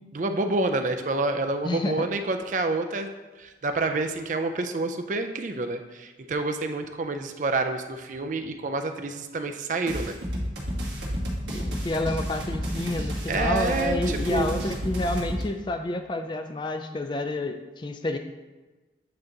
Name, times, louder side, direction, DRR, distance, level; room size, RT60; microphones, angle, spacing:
voice 1, 0.1-3.1 3.4-10.2 13.3-14.5, right 3 dB, 45° right, 6 dB, 0.4 m, -28 dB
voice 2, 1.6-2.1 11.5-18.2, left 2 dB, 25° left, 7 dB, 0.4 m, -29 dB
sound 1, 9.9-15.4, equal, 70° right, 1.4 m, -31 dB
8.5 x 2.9 x 3.8 m, 1.2 s
head